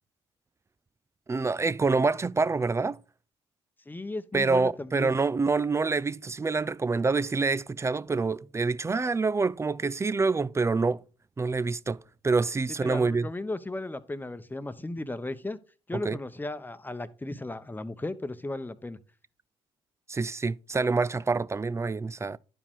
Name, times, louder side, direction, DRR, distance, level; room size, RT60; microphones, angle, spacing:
voice 1, 1.3-3.0 4.3-11.0 11.4-13.3 15.9-16.2 20.1-22.4, right 4 dB, 20° right, 0.4 m, -26 dB
voice 2, 3.9-5.2 12.8-15.6 15.9-19.0, left 2 dB, 15° left, 0.9 m, -35 dB
11.0 x 4.9 x 3.6 m
hypercardioid pair, 55°, 13 cm